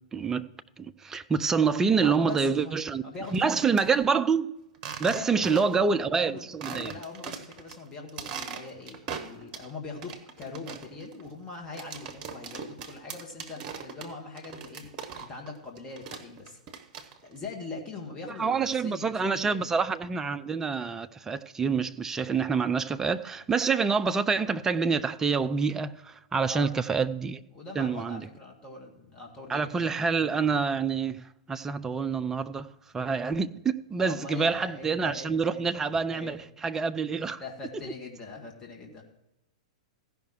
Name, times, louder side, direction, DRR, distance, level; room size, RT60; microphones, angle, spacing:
voice 1, 0.1-0.5 0.8-3.0 3.3-4.5 5.0-6.9 18.4-27.4 27.8-28.3 29.5-32.7 32.9-37.4, right 5 dB, 15° right, 0.5 m, -27 dB
voice 2, 2.0-2.7 3.0-3.8 5.0-14.9 15.1-16.6 17.2-19.7 26.4-26.8 27.5-29.9 34.0-36.4 37.4-39.0, left 3 dB, 20° left, 2.1 m, -42 dB
sound 1, 3.2-3.9 4.7-5.9 6.2-6.3 6.6-7.8 8.1-9.7 10.0-15.5 15.8-17.4, right 6 dB, 30° right, 1.2 m, -40 dB
15.5 x 5.7 x 4.5 m
figure-of-eight pair, 105°, 3 cm